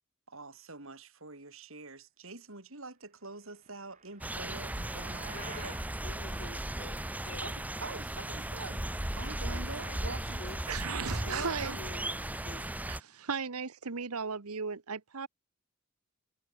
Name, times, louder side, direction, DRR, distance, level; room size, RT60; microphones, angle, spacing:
voice 1, 0.3-5.8 6.3-6.4 7.4-10.4 11.2-11.8, right 3 dB, 60° right, 3.6 m, -45 dB
sound 1, 3.6-5.9, right 5 dB, 35° right, 4.9 m, -50 dB
sound 2, 4.2-13.0, right 1 dB, 5° right, 0.8 m, -36 dB
voice 2, 5.3-5.8 6.0-7.5 9.5-10.1 10.4-10.6 11.3-12.7, left 2 dB, 50° left, 2.5 m, -48 dB
voice 3, 10.7-11.7 12.9-15.3, right 5 dB, 80° right, 1.1 m, -36 dB
head